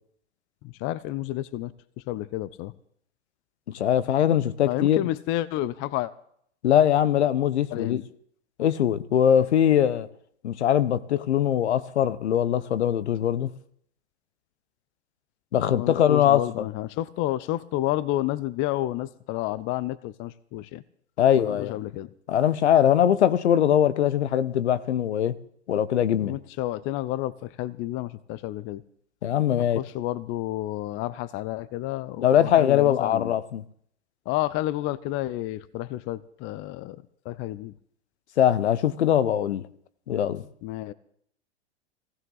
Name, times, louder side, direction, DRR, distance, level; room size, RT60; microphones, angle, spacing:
voice 1, 0.6-1.7 2.1-2.7 4.6-6.1 7.7-8.0 15.6-20.8 21.4-22.1 26.2-28.8 29.8-33.3 34.3-37.0 37.3-37.7 40.6-40.9, left 15 dB, 35° left, 0.6 m, -30 dB
voice 2, 3.7-5.1 6.6-8.0 8.6-10.1 10.4-13.5 15.5-16.7 21.2-21.8 22.3-25.4 25.7-26.4 29.2-29.8 32.2-33.6 38.4-39.7 40.1-40.4, left 10 dB, 75° left, 1.0 m, -22 dB
17.5 x 16.0 x 4.0 m
hypercardioid pair, 105°, 34 cm